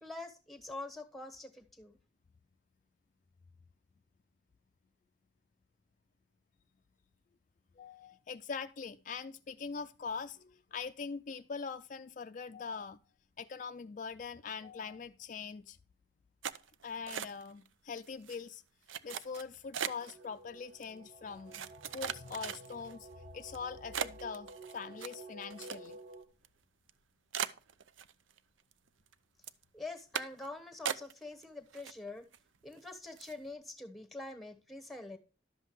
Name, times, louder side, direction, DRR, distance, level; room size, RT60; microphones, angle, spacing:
voice 1, 0.0-2.0 29.7-32.2 32.6-35.2, left 2 dB, ahead, 1.1 m, -45 dB
voice 2, 7.8-13.0 13.4-15.8 16.8-18.6 19.0-21.7 21.9-26.0, left 5 dB, 40° left, 0.4 m, -43 dB
sound 1, 16.4-17.7 18.0-18.4 18.9-20.2 20.8-20.9 21.5-22.9 23.4-23.6 23.9-26.1 26.4-26.5 26.9-27.0 27.3-28.4 28.7-29.1 29.4-29.6 30.1-30.5 30.9-31.4 31.7-32.4 32.7-32.8 33.2-33.4, right 8 dB, 85° right, 0.6 m, -39 dB
sound 2, 20.0-26.2, right 2 dB, 70° right, 1.7 m, -52 dB
11.5 x 7.6 x 3.1 m
head